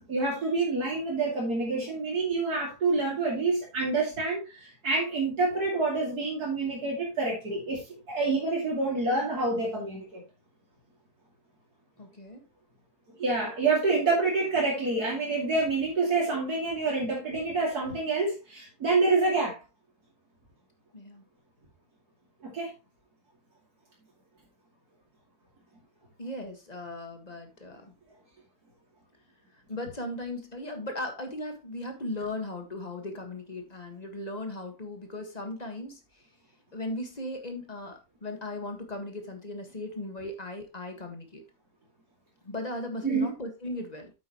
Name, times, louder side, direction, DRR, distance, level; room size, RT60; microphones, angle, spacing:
voice 1, 0.0-10.2 13.2-19.6 22.4-22.7 43.0-43.3, right 3 dB, 70° right, -3 dB, 3.1 m, -27 dB
voice 2, 12.0-12.4 20.9-21.2 26.2-27.9 29.7-36.0 36.7-41.4 42.4-44.1, left 1 dB, 25° left, 5 dB, 1.7 m, -37 dB
8.6 x 8.1 x 3.0 m, 0.26 s
omnidirectional pair, 1.7 m